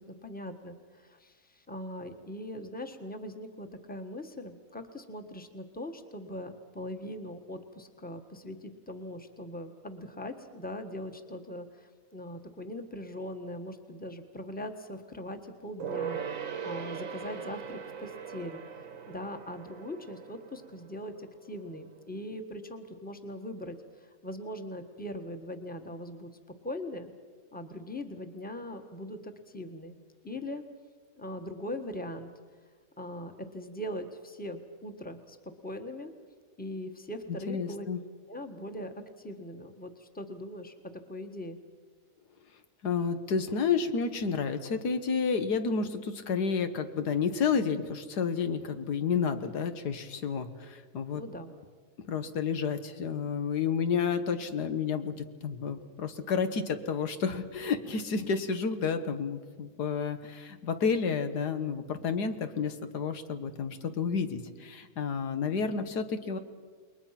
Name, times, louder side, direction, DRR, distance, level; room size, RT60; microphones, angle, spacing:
voice 1, 0.0-18.6 19.1-26.3 26.6-27.1 27.5-30.0 30.2-30.6 31.2-32.3 33.0-35.4 35.6-36.1 36.6-37.9 38.3-40.7 41.1-41.6 51.1-51.5, left 1 dB, 5° left, 6 dB, 1.4 m, -41 dB
Gong, 15.8-21.7 22.0-22.1, right 7 dB, 60° right, 1.5 m, -40 dB
voice 2, 37.5-38.0 42.8-51.2 52.0-66.4, left 6 dB, 90° left, 8 dB, 1.9 m, -30 dB
28.5 x 21.5 x 5.9 m, 1.5 s
omnidirectional pair, 1.7 m